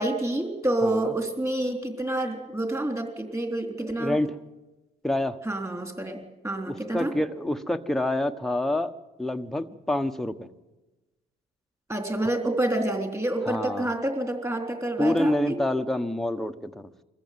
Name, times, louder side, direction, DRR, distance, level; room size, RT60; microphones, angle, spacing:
voice 1, 0.0-4.2 5.5-7.2 11.9-15.6, right 1 dB, 15° right, 5 dB, 3.5 m, -28 dB
voice 2, 0.8-1.1 3.9-4.3 5.0-5.4 6.7-8.9 9.2-10.5 13.5-13.9 15.0-16.9, left 1 dB, ahead, 6 dB, 1.1 m, -27 dB
22.5 x 14.5 x 9.5 m, 1.1 s
cardioid pair, 90°, 20 cm